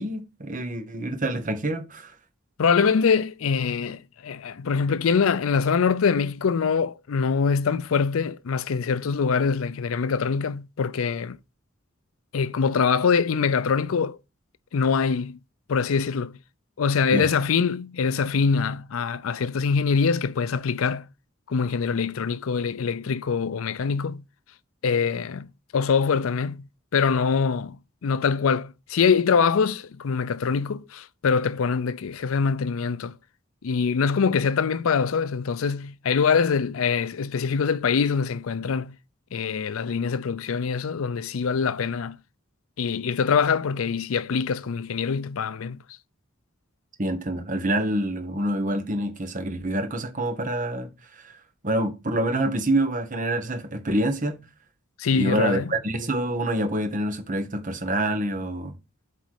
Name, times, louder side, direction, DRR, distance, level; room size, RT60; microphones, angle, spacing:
voice 1, 0.0-2.1 17.1-17.3 47.0-50.9 51.2-51.3 51.6-54.4 55.1-58.7, right 1 dB, 40° right, 1.2 m, -26 dB
voice 2, 2.6-11.4 12.3-14.2 14.7-15.4 15.7-16.4 16.8-21.1 21.5-24.2 24.8-33.2 33.6-39.0 39.3-42.2 42.8-45.8 55.0-55.7, left 5 dB, 75° left, 0.5 m, -24 dB
7.7 x 4.0 x 4.8 m
head